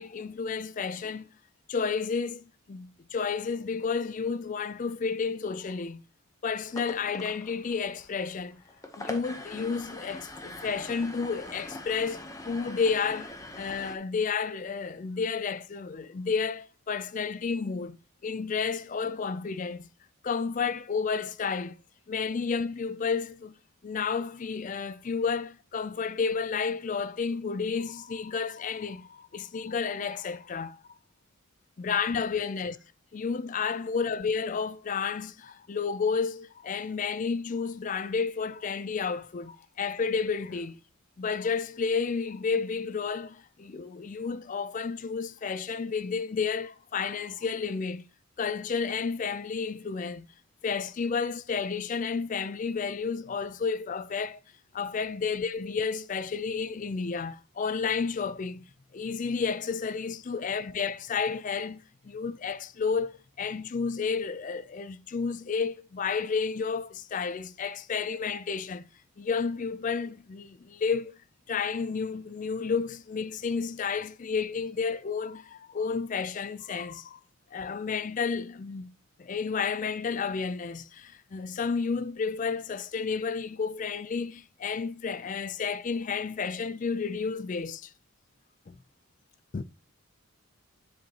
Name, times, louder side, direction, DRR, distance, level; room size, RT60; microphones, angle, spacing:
voice 1, 0.0-1.3 1.7-6.0 6.4-8.6 9.0-18.0 18.2-19.9 20.2-21.8 22.1-23.5 23.8-30.8 31.8-32.8 33.1-40.7 41.2-48.0 48.4-50.3 50.6-54.4 54.7-58.6 58.9-68.9 69.2-71.1 71.5-77.2 77.5-78.9 79.2-87.9 88.7-88.8 89.5-89.6, left 5 dB, 35° left, 0.3 m, -31 dB
sound 1, 6.6-14.0, left 1 dB, 15° left, 0.8 m, -43 dB
voice 2, 33.7-34.1 40.4-40.7 60.3-60.6 62.1-62.2, left 3 dB, 65° left, 0.9 m, -57 dB
7.7 x 7.2 x 2.9 m
head